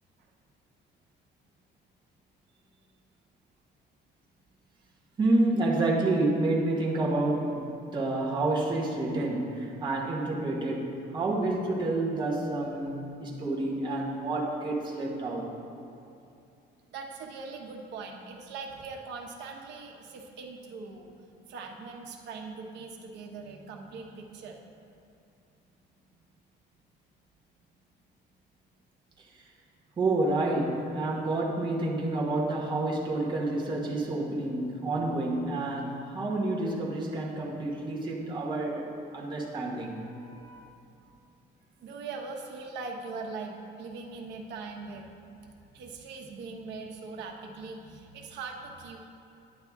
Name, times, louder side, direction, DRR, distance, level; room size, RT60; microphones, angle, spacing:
voice 1, 5.2-15.5 30.0-40.0, right 2 dB, 25° right, -4 dB, 1.2 m, -29 dB
voice 2, 16.9-21.1 21.5-24.6 39.8-40.8 41.8-45.1 45.7-49.0, right 4 dB, 70° right, 2 dB, 1.1 m, -41 dB
9.7 x 9.5 x 3.6 m, 2.6 s
cardioid pair, 165°, 19 cm